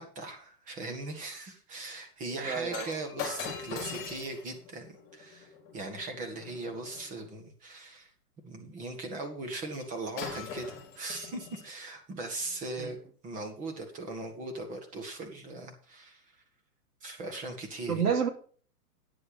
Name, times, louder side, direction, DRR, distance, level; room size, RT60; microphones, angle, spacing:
voice 1, 0.0-8.1 8.4-13.0 13.2-16.3 17.0-18.2, right 2 dB, 15° right, 4 dB, 1.7 m, -39 dB
voice 2, 2.4-2.9 12.8-12.9 17.9-18.3, right 7 dB, 75° right, 3 dB, 2.7 m, -29 dB
Shatter, 2.7-7.1 9.7-9.9 10.2-11.7 12.4-12.6, left 6 dB, 25° left, 4.8 m, -42 dB
9.8 x 8.0 x 5.1 m, 0.44 s
hypercardioid pair, 150°, 46 cm